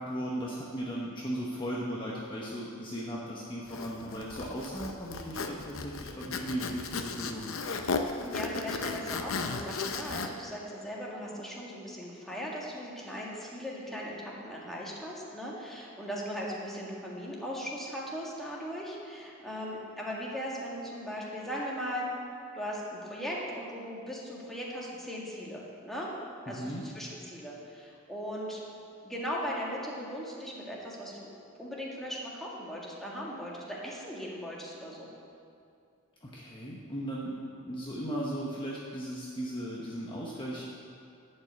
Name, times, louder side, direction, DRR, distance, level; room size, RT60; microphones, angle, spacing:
voice 1, 0.0-7.5 26.5-26.8 36.2-37.3 37.6-40.7, equal, 25° left, -4 dB, 1.0 m, -37 dB
Zipper (clothing), 3.7-10.3, left 4 dB, 75° left, 0.7 m, -35 dB
voice 2, 8.2-22.1 22.5-26.1 26.4-28.6 29.0-31.3 31.6-35.1, equal, ahead, -5 dB, 1.9 m, -38 dB
11.5 x 5.4 x 8.0 m, 2.5 s
head